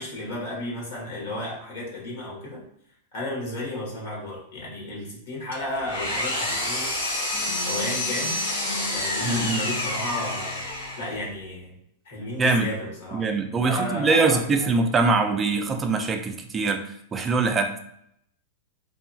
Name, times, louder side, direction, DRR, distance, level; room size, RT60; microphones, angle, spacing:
voice 1, 0.0-2.6 3.1-6.9 7.6-8.4 8.9-10.6 11.0-11.7 12.0-13.2 13.6-14.7, left 1 dB, 65° left, -3 dB, 1.4 m, -33 dB
Engine, 5.5-11.2, left 1 dB, 85° left, 1.3 m, -28 dB
sound 1, 7.3-11.3, left 2 dB, 35° left, 1.0 m, -38 dB
voice 2, 9.2-9.6 12.4-12.7 13.1-16.8 17.1-17.8, right 3 dB, 15° right, 5 dB, 0.3 m, -23 dB
2.8 x 2.3 x 2.6 m, 0.72 s
supercardioid pair, 155°, 0 cm